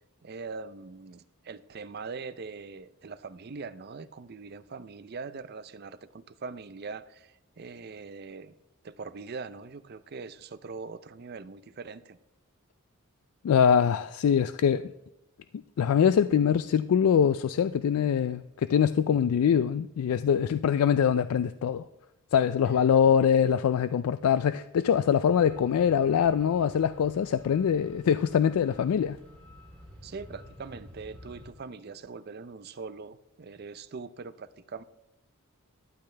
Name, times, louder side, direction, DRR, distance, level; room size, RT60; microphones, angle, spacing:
voice 1, 0.2-8.5 8.8-12.2 30.0-34.8, right 4 dB, 45° right, 0.5 m, -42 dB
voice 2, 13.4-14.9 15.8-21.8 22.3-29.2, left 8 dB, 85° left, 0.3 m, -23 dB
sound 1, 25.1-31.5, equal, 5° left, 3.3 m, -51 dB
12.0 x 9.8 x 3.3 m
head